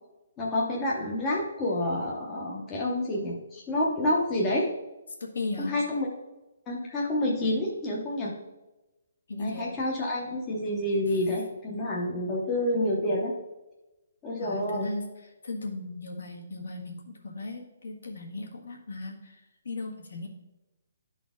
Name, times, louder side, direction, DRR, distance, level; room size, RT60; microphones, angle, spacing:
voice 1, 0.4-4.7 5.7-6.1 6.7-8.4 9.4-13.3 14.2-14.9, left 1 dB, 10° left, -3 dB, 0.7 m, -28 dB
voice 2, 5.2-5.8 9.3-9.7 11.1-11.2 14.4-15.1 15.4-20.3, left 2 dB, 70° left, 0 dB, 1.6 m, -37 dB
11.0 x 4.2 x 3.5 m, 1.0 s
hypercardioid pair, 180°, 0 cm